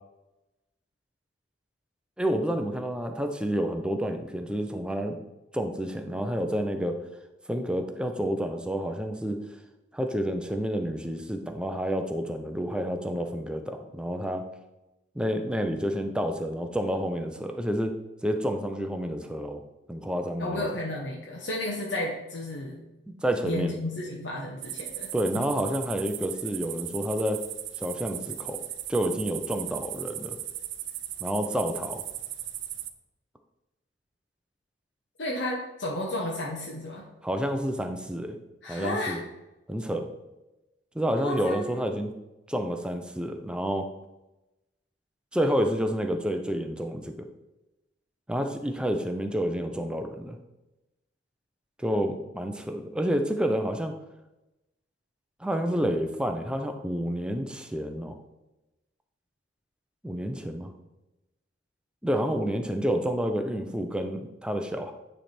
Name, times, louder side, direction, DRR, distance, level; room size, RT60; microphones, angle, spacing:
voice 1, 2.2-5.2 5.5-7.0 7.5-9.4 9.9-14.5 15.2-19.6 19.9-20.7 23.1-23.7 25.1-27.4 27.8-28.6 28.9-30.4 31.2-32.0 37.2-38.4 38.7-39.2 39.7-40.1 40.9-42.1 42.5-43.9 45.3-47.3 48.3-50.4 51.8-53.9 55.4-58.2 60.0-60.7 62.0-64.9, equal, 5° right, 5 dB, 0.5 m, -29 dB
voice 2, 20.4-22.8 23.4-25.1 25.3-25.5 35.2-37.0 38.6-39.2 41.2-41.7, left 1 dB, 70° left, -2 dB, 0.9 m, -32 dB
sound 1, 24.6-32.9, right 12 dB, 90° right, 0.5 m, -37 dB
9.2 x 3.4 x 4.3 m, 1.0 s
head